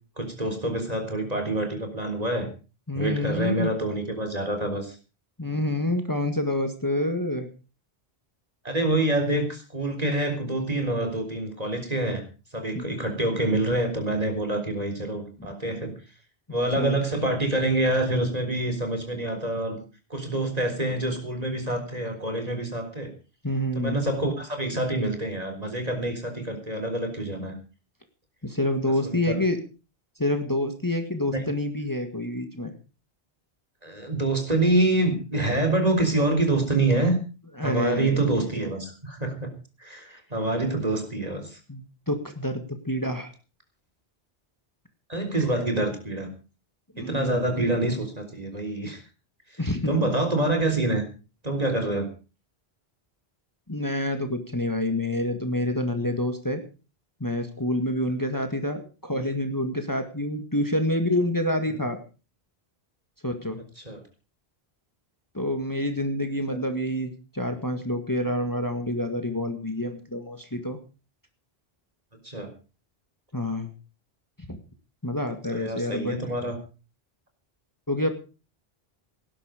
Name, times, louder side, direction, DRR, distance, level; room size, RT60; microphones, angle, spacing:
voice 1, 0.2-2.5 2.9-5.0 8.6-12.2 12.5-15.9 16.5-19.8 20.1-23.1 23.7-27.5 29.0-29.4 31.3-31.4 33.8-37.2 37.6-39.5 39.8-41.6 45.1-46.3 47.0-49.0 49.9-51.0 51.4-52.1 58.3-58.4 63.8-64.0 66.5-66.6 72.2-72.5 75.5-76.6, right 2 dB, 40° right, 6 dB, 4.0 m, -26 dB
voice 2, 2.9-3.7 5.4-7.5 12.7-12.9 16.5-16.9 23.4-24.0 28.4-29.6 30.2-32.7 37.6-38.6 41.7-43.3 45.4-45.6 47.0-47.4 49.6-50.1 53.7-56.6 57.2-62.0 63.2-63.6 65.3-70.8 73.3-73.7 74.5-74.6 75.0-76.2 77.9-78.1, left 1 dB, 20° left, 6 dB, 1.9 m, -28 dB
18.0 x 11.5 x 5.1 m, 0.34 s
omnidirectional pair, 1.1 m